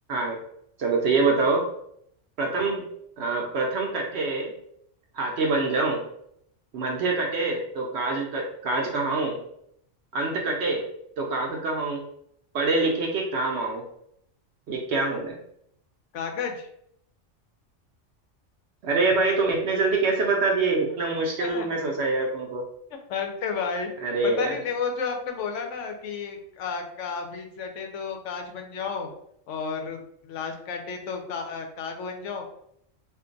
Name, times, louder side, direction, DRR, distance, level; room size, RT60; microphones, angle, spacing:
voice 1, 0.8-1.7 2.4-2.8 3.2-4.5 5.1-6.0 6.7-9.4 10.1-10.8 11.2-12.0 12.5-13.8 14.7-15.3 18.8-22.6 24.0-24.5, right 3 dB, 65° right, 0 dB, 0.8 m, -25 dB
voice 2, 16.1-16.7 21.4-21.7 22.9-23.9 24.2-29.1 29.5-32.4, left 5 dB, 75° left, 4 dB, 0.9 m, -32 dB
2.5 x 2.3 x 3.7 m, 0.72 s
omnidirectional pair, 1.3 m